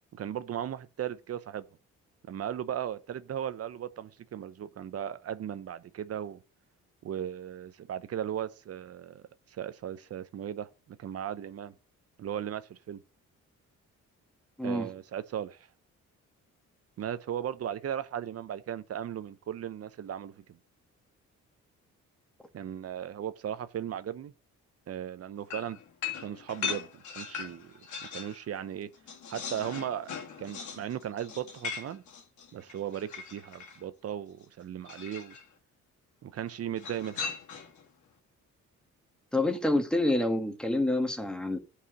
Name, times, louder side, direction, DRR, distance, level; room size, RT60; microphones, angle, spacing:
voice 1, 0.1-1.6 2.3-6.4 7.0-9.2 9.5-11.7 12.2-13.0 14.6-15.7 17.0-20.6 22.5-24.3 24.9-25.8 26.2-28.9 29.3-32.0 32.5-35.3 36.2-37.3, right 10 dB, 55° right, 0.7 m, -37 dB
sound 1, 25.5-28.4 28.7-33.8 34.8-35.4 36.8-37.8, left 6 dB, 75° left, 2.2 m, -39 dB
voice 2, 39.3-41.6, left 1 dB, 5° left, 1.7 m, -27 dB
8.3 x 4.9 x 6.3 m
cardioid pair, 90°, 30 cm